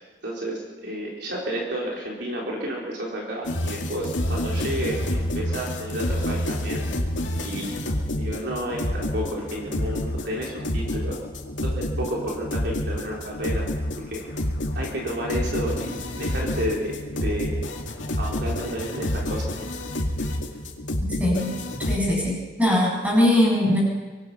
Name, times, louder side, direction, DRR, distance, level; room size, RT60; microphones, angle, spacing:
voice 1, 0.2-6.8 7.4-11.2 11.6-13.7 14.1-14.2 14.7-17.6 18.2-19.7, equal, 65° right, -3 dB, 4.3 m, -31 dB
sound 1, 3.4-22.0, left 1 dB, 85° left, 2.5 m, -28 dB
voice 2, 21.2-21.5 21.9-23.8, left 1 dB, 10° right, -3 dB, 8.0 m, -21 dB
25.0 x 19.0 x 5.8 m, 1.3 s
head